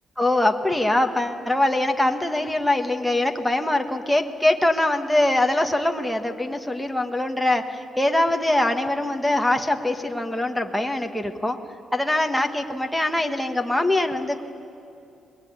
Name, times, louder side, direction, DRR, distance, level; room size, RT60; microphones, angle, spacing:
voice 1, 0.2-11.6 11.9-14.4, left 1 dB, ahead, 4 dB, 1.5 m, -23 dB
25.5 x 21.0 x 9.6 m, 2.7 s
cardioid pair, 125°, 0 cm